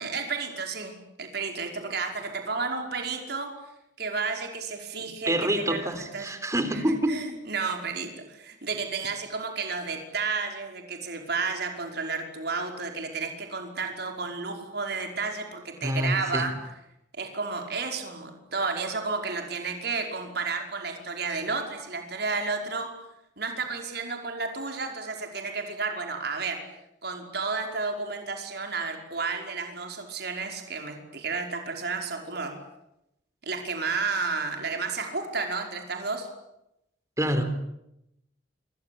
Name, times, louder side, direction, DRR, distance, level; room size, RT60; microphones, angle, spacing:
voice 1, 0.0-3.5 4.0-6.4 6.7-16.5 17.1-22.9 23.4-26.6 27.0-32.5 33.4-36.3, right 4 dB, 55° right, 3 dB, 5.3 m, -32 dB
voice 2, 5.0-7.2 15.8-16.5 37.2-37.6, right 1 dB, 15° right, 9 dB, 3.8 m, -27 dB
27.5 x 24.5 x 8.7 m, 0.84 s
head